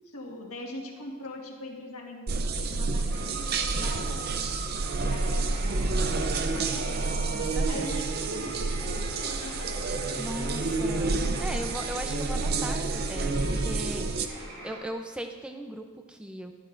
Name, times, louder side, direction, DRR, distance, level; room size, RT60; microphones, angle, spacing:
voice 1, 0.1-4.5 5.0-5.7 6.4-7.2 7.7-9.7 12.1-12.2, left 1 dB, 90° left, -1 dB, 1.7 m, -42 dB
sound 1, 2.3-14.3, right 3 dB, 45° right, 0.6 m, -29 dB
sound 2, 3.1-14.8, right 2 dB, 90° right, 3.0 m, -42 dB
voice 2, 7.3-8.0 10.2-16.5, equal, 5° right, 5 dB, 0.6 m, -38 dB
13.0 x 12.0 x 2.6 m, 1.4 s
head